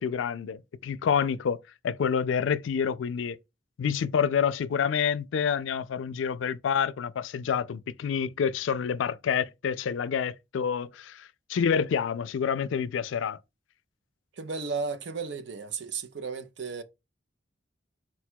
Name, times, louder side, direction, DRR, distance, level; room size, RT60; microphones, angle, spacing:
voice 1, 0.0-3.4 3.8-13.4, left 7 dB, 85° left, 0.4 m, -28 dB
voice 2, 14.4-16.8, right 5 dB, 70° right, 0.5 m, -34 dB
4.3 x 2.2 x 4.4 m
head